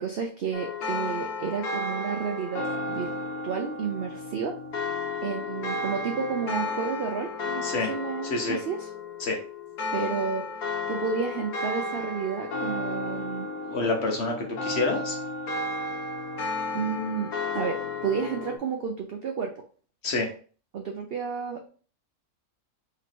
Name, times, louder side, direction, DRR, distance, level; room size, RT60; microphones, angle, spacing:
voice 1, 0.0-3.1 3.4-4.6 5.2-8.9 9.9-13.5 16.7-19.6 20.7-21.7, right 6 dB, 70° right, 3 dB, 0.5 m, -31 dB
sound 1, 0.5-18.6, left 2 dB, 75° left, 1.4 m, -33 dB
voice 2, 13.7-15.2 20.0-20.3, left 3 dB, 50° left, 1 dB, 1.0 m, -27 dB
3.2 x 3.1 x 4.1 m, 0.41 s
omnidirectional pair, 1.6 m